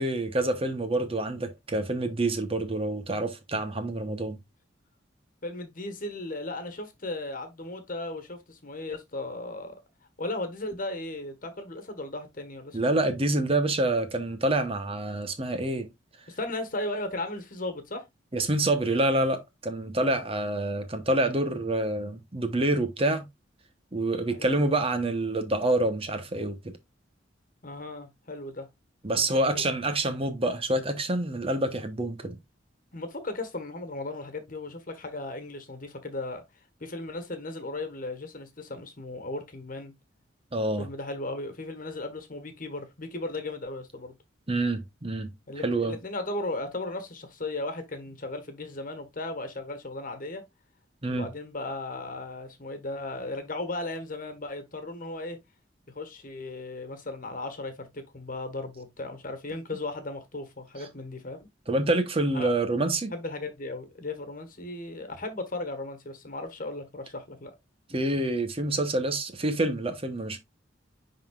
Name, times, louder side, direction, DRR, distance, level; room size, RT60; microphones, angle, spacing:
voice 1, 0.0-4.4 12.7-15.9 18.3-23.2 23.9-26.7 29.0-32.4 40.5-40.9 44.5-45.3 45.6-46.0 51.0-51.3 60.8-60.9 61.7-63.1 67.9-70.4, right 2 dB, 30° right, 1.0 m, -27 dB
voice 2, 5.4-9.7 10.2-13.0 16.3-18.0 24.3-24.6 27.6-28.7 29.1-29.6 32.9-36.4 36.8-39.9 40.8-44.1 45.5-50.4 51.1-55.4 55.9-61.5 62.3-62.5 63.1-67.5, left 2 dB, 45° left, 1.4 m, -36 dB
10.5 x 3.9 x 2.4 m
head